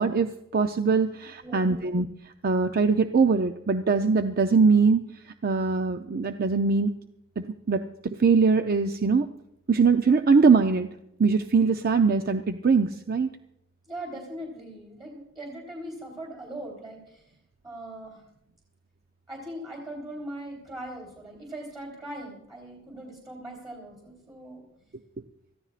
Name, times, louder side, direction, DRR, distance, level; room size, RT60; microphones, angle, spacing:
voice 1, 0.0-2.1 2.4-5.0 5.4-6.9 7.4-9.3 9.7-10.9 11.2-13.3, right 4 dB, 50° right, 7 dB, 0.5 m, -22 dB
voice 2, 1.4-1.8 13.8-17.3 17.6-18.2 19.3-24.6, right 1 dB, 20° right, -1 dB, 3.4 m, -40 dB
25.0 x 15.0 x 2.5 m, 0.81 s
head